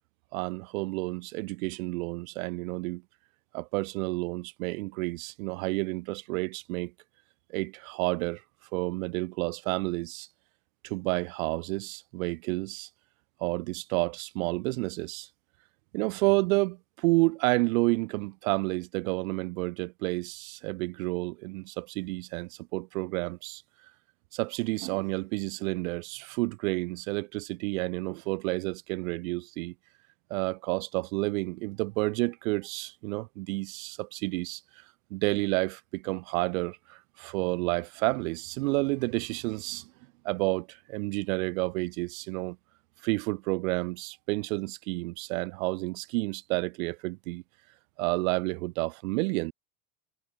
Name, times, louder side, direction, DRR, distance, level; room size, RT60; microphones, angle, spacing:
voice 1, 0.3-3.0 3.5-6.9 7.5-8.4 8.7-10.3 10.8-12.9 13.4-15.3 15.9-23.6 24.3-29.7 30.3-34.6 35.1-39.9 40.2-42.6 43.0-47.4 48.0-49.5, right 24 dB, 75° right, 1.1 m, -30 dB
supercardioid pair, 160°, 41 cm